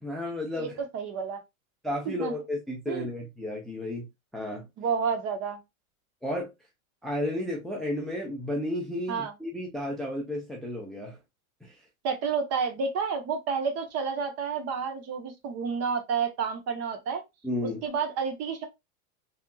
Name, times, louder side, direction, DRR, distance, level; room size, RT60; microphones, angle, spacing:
voice 1, 0.0-0.7 1.8-4.7 6.2-6.5 7.0-11.2 11.6-11.8 17.4-17.8, left 1 dB, ahead, 0.5 m, -33 dB
voice 2, 0.9-1.4 2.1-2.3 2.9-3.1 4.8-5.6 9.1-9.3 12.0-17.2 17.8-18.7, right 6 dB, 35° right, 1.0 m, -30 dB
3.4 x 2.8 x 2.2 m
supercardioid pair, 120°, 42 cm